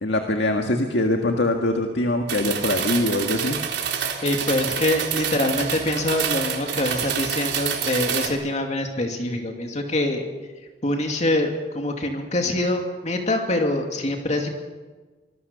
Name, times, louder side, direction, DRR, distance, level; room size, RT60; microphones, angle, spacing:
voice 1, 0.0-3.6, left 1 dB, 80° left, 3 dB, 1.8 m, -23 dB
sound 1, 2.3-8.3, right 8 dB, 80° right, 3.6 m, -27 dB
voice 2, 4.2-10.2 10.8-14.5, left 1 dB, 40° left, 3 dB, 2.5 m, -24 dB
25.5 x 20.0 x 6.9 m, 1.3 s
head